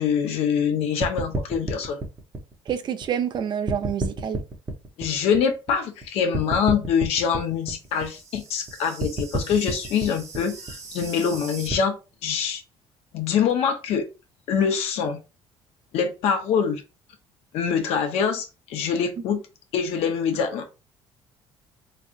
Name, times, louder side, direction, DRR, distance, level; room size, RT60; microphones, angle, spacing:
voice 1, 0.0-2.0 5.0-12.0 12.2-12.6 13.1-14.0 14.5-15.2 15.9-16.8 17.5-19.4 19.7-20.6, left 7 dB, 75° left, 1.0 m, -24 dB
sound 1, 1.0-3.4 3.7-6.0 6.3-11.7, right 2 dB, 30° right, 0.9 m, -31 dB
voice 2, 2.7-4.4, right 8 dB, 45° right, 0.5 m, -27 dB
3.7 x 3.2 x 2.6 m
cardioid pair, 115°, 10 cm